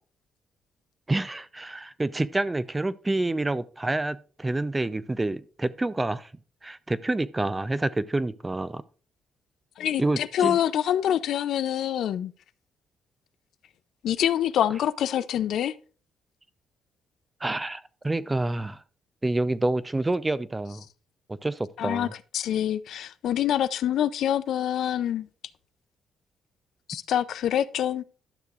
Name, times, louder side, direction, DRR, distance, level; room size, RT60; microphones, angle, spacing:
voice 1, 1.1-6.3 6.6-8.8 10.0-10.6 17.4-18.8 19.2-20.8 21.3-22.1, right 2 dB, 15° right, 0.5 m, -28 dB
voice 2, 9.8-12.3 14.0-15.7 21.8-22.1 22.3-25.3 26.9-28.0, left 10 dB, 75° left, 0.4 m, -26 dB
12.0 x 6.5 x 2.4 m
cardioid pair, 90°, 0 cm